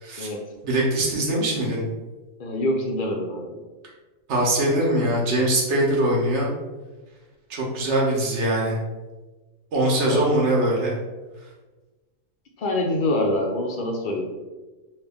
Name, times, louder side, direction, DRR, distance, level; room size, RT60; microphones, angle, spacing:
voice 1, 0.6-1.8 4.3-6.5 7.5-8.8 9.7-11.0, right 1 dB, 60° right, -3 dB, 1.1 m, -22 dB
voice 2, 2.4-3.6 10.0-10.3 12.6-14.3, left 1 dB, 70° left, 1 dB, 0.4 m, -25 dB
3.2 x 2.3 x 3.4 m, 1.2 s
omnidirectional pair, 1.4 m